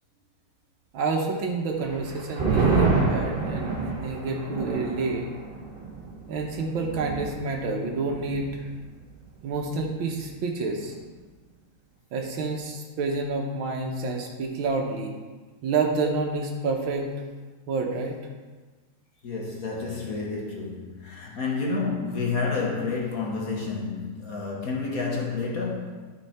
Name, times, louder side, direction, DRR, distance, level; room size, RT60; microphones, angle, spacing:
voice 1, 0.9-5.3 6.3-8.6 9.4-10.9 12.1-15.1 15.6-17.1 17.7-18.2, right 3 dB, 70° right, 2 dB, 1.7 m, -29 dB
sound 1, 1.8-8.7 9.0-9.1 9.5-10.0, right 4 dB, 30° right, 1.2 m, -28 dB
voice 2, 19.2-26.1, left 4 dB, 50° left, -2 dB, 1.3 m, -30 dB
12.0 x 4.3 x 4.3 m, 1.3 s
omnidirectional pair, 2.3 m